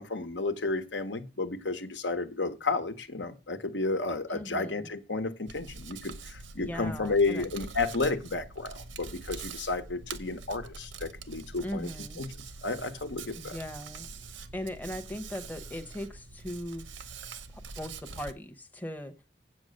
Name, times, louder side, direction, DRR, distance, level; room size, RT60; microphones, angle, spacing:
voice 1, 0.0-11.9 12.2-12.3 12.6-13.6, left 3 dB, 75° left, 1.1 m, -32 dB
voice 2, 4.3-4.9 6.6-7.5 11.6-12.2 13.3-14.1 14.5-16.9 17.5-19.1, left 1 dB, 10° left, 0.8 m, -39 dB
Hands, 5.5-18.3, right 4 dB, 85° right, 0.9 m, -44 dB
8.0 x 7.7 x 6.4 m
head